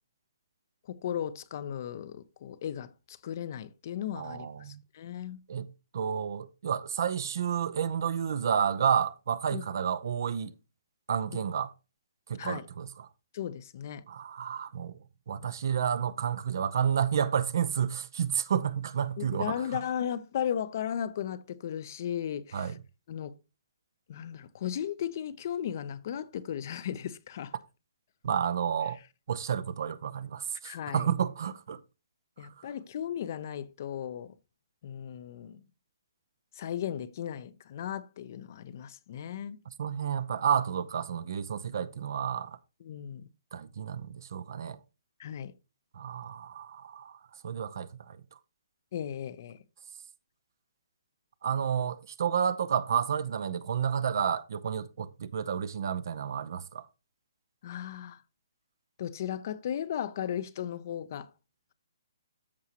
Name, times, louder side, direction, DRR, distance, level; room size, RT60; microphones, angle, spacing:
voice 1, 0.9-5.4 9.5-9.6 12.4-12.7 13.3-14.0 19.2-22.7 23.1-23.3 24.1-27.5 30.6-31.1 32.4-34.3 34.8-35.6 36.5-39.6 42.8-43.3 45.2-45.5 48.9-49.6 57.6-58.2 59.0-61.3, left 9 dB, 50° left, 0.7 m, -36 dB
voice 2, 4.1-4.8 5.5-10.5 11.1-11.7 12.3-13.1 14.1-19.8 22.5-22.8 28.2-29.0 29.3-31.8 32.4-32.7 39.7-42.6 43.5-44.8 45.9-48.2 51.4-56.9, right 8 dB, 60° right, 0.7 m, -31 dB
13.5 x 4.8 x 2.9 m
hypercardioid pair, 145°, 2 cm